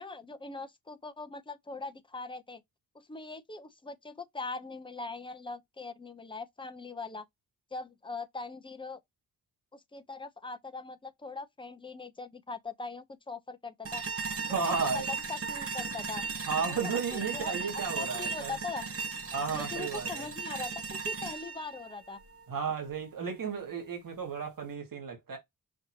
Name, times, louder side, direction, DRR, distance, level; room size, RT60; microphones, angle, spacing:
voice 1, 0.0-2.6 2.9-7.2 7.7-9.0 9.7-14.0 14.5-16.3 16.7-18.8 19.5-22.2, left 3 dB, 15° left, 0.7 m, -41 dB
sound 1, 13.8-22.9, right 4 dB, 40° right, 1.1 m, -37 dB
voice 2, 14.5-15.0 16.5-18.5 19.3-20.3 22.5-25.4, right 5 dB, 70° right, 1.7 m, -33 dB
5.2 x 2.8 x 2.8 m
cardioid pair, 75°, 34 cm